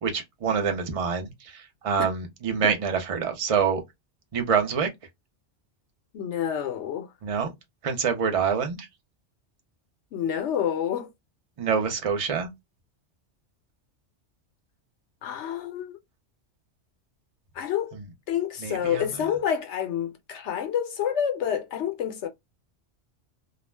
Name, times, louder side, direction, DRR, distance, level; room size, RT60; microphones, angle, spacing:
voice 1, 0.0-3.8 4.3-4.9 7.2-7.5 7.8-8.9 11.6-12.5 18.6-19.0, right 6 dB, 40° right, 0.6 m, -26 dB
voice 2, 6.1-7.1 10.1-11.1 15.2-16.0 17.5-18.0 18.3-22.3, left 9 dB, 75° left, 0.8 m, -28 dB
2.4 x 2.1 x 3.2 m
omnidirectional pair, 1.2 m